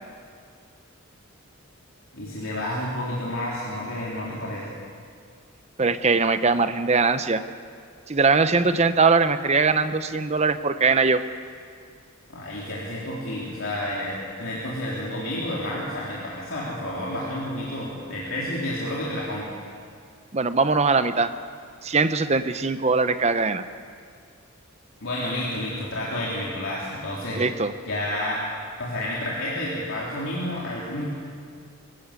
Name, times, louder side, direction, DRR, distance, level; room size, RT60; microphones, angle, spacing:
voice 1, 2.1-4.7 12.3-19.5 25.0-27.4 27.9-28.4 28.8-31.1, left 1 dB, 65° left, -6 dB, 3.6 m, -30 dB
voice 2, 5.8-7.4 8.1-11.2 20.3-21.3 21.8-23.6 27.4-27.7, right 4 dB, 30° right, 11 dB, 0.7 m, -21 dB
23.0 x 15.5 x 8.3 m, 2.1 s
head